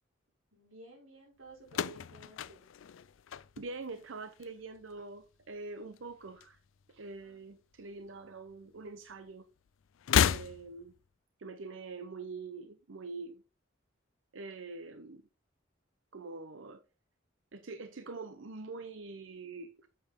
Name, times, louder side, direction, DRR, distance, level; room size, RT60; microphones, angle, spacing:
voice 1, 0.5-2.6, right 2 dB, 90° right, 4.7 m, -54 dB
sound 1, 1.7-4.0 4.3-4.9 6.0-7.0 7.2-7.4 8.5-8.6 10.0-11.0, left 8 dB, 75° left, 0.4 m, -32 dB
voice 2, 3.6-6.6 6.9-9.5 10.2-10.9 11.4-13.4 14.3-15.2 16.1-16.8 17.5-19.9, right 3 dB, 70° right, 0.7 m, -44 dB
8.7 x 7.7 x 3.6 m
head